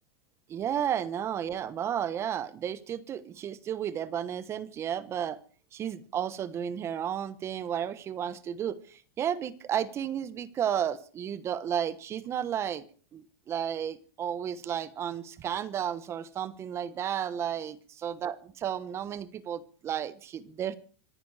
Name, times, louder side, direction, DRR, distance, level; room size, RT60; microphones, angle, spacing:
voice 1, 0.5-5.4 5.7-12.8 13.1-20.7, right 9 dB, 20° right, 18 dB, 1.0 m, -33 dB
25.5 x 10.5 x 4.9 m, 0.42 s
supercardioid pair, 160°, 13 cm